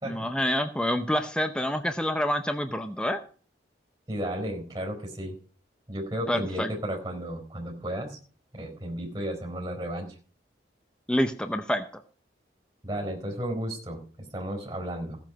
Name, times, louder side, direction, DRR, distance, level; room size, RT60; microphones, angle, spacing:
voice 1, 0.0-3.2 6.3-6.7 11.1-11.8, equal, 5° left, 7 dB, 0.6 m, -27 dB
voice 2, 4.1-5.3 5.9-8.2 8.5-10.1 12.8-14.0 14.3-15.2, equal, 20° right, 1 dB, 4.3 m, -33 dB
15.0 x 7.7 x 5.1 m, 0.40 s
head